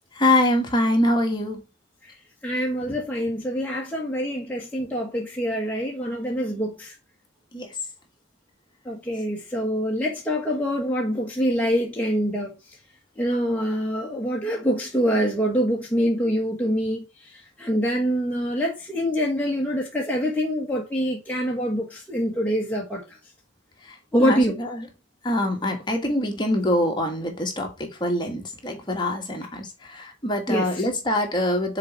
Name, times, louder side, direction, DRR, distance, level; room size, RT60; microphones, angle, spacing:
voice 1, 0.1-1.6 7.5-7.7 24.2-24.8 25.2-31.8, left 1 dB, 25° left, 1.6 m, -24 dB
voice 2, 2.4-6.9 8.8-12.5 13.2-17.3 17.6-23.0 24.1-24.6 30.5-30.8, equal, 10° left, 1.3 m, -25 dB
6.7 x 4.0 x 4.5 m
head